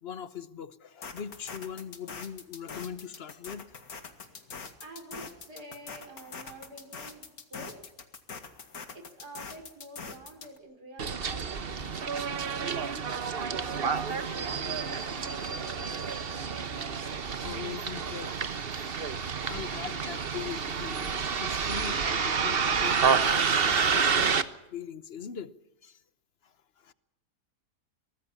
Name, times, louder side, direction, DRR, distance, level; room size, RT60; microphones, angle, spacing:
voice 1, 0.0-3.7 4.5-4.6 17.4-18.3 19.4-24.4 24.7-25.5 25.8-26.0 26.4-26.9, left 8 dB, 45° left, 1.1 m, -41 dB
sound 1, 1.0-10.6, left 5 dB, 65° left, 2.4 m, -43 dB
voice 2, 4.8-7.9 8.9-13.5 14.0-17.1, right 1 dB, 80° right, 5.2 m, -49 dB
Bus, 11.0-24.4, right 6 dB, 40° right, 1.2 m, -29 dB
24.0 x 18.5 x 7.2 m
omnidirectional pair, 1.7 m